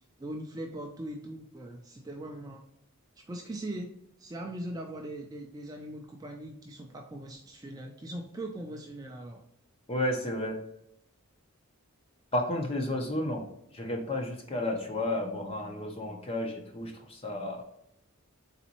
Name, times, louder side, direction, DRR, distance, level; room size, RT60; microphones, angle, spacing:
voice 1, 0.2-2.6 3.3-3.9 4.2-9.4, right 1 dB, 15° right, 1 dB, 0.3 m, -40 dB
voice 2, 9.9-10.6 12.3-13.4 13.7-17.6, left 1 dB, 25° left, 1 dB, 0.7 m, -32 dB
4.1 x 3.5 x 2.9 m, 0.74 s
head